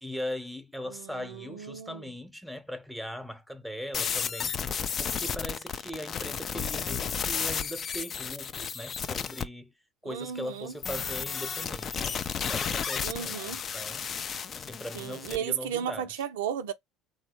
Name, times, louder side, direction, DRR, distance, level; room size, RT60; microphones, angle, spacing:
voice 1, 0.0-9.7 10.0-14.1 14.5-16.2, equal, ahead, 0.6 m, -40 dB
voice 2, 0.9-2.0 10.0-10.7 13.0-13.6 14.9-16.7, right 9 dB, 80° right, 0.4 m, -34 dB
sound 1, 3.9-9.5 10.8-15.4, left 7 dB, 40° left, 0.4 m, -33 dB
3.2 x 2.0 x 2.8 m
hypercardioid pair, 70°, 0 cm